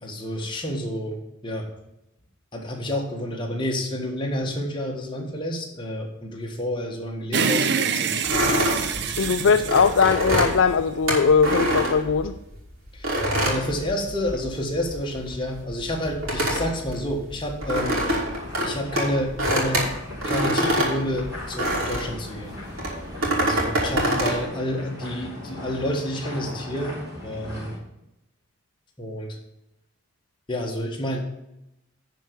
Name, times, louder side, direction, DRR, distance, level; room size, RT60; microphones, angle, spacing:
voice 1, 0.0-1.7 2.5-9.7 12.9-18.2 18.5-19.9 20.2-22.6 23.4-27.7 29.0-29.4 30.5-31.2, left 1 dB, 20° left, 0 dB, 1.6 m, -30 dB
sound 1, 7.3-10.8, right 6 dB, 50° right, 0.6 m, -26 dB
sound 2, 8.2-12.5 13.0-14.5 14.8-22.2 22.8-24.4, right 1 dB, 75° right, 3.0 m, -25 dB
voice 2, 9.2-12.4, left 5 dB, 65° left, 7 dB, 0.4 m, -20 dB
sound 3, 17.6-27.8, left 1 dB, 15° right, 3.5 m, -39 dB
10.0 x 4.6 x 7.0 m, 0.87 s
head